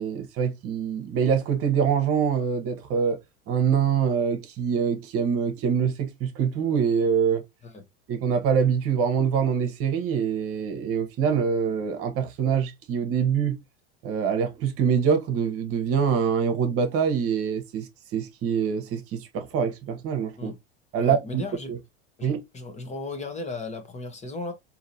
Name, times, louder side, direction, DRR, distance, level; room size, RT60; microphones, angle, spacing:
voice 1, 0.0-3.2 3.5-7.4 8.1-13.6 14.0-20.5 20.9-21.4 21.7-21.8 22.2-22.4, right 7 dB, 45° right, 1.0 m, -25 dB
voice 2, 21.0-21.7 22.2-22.3 22.5-24.5, left 3 dB, 20° left, 0.9 m, -35 dB
3.8 x 2.8 x 2.7 m
hypercardioid pair, 95°, 32 cm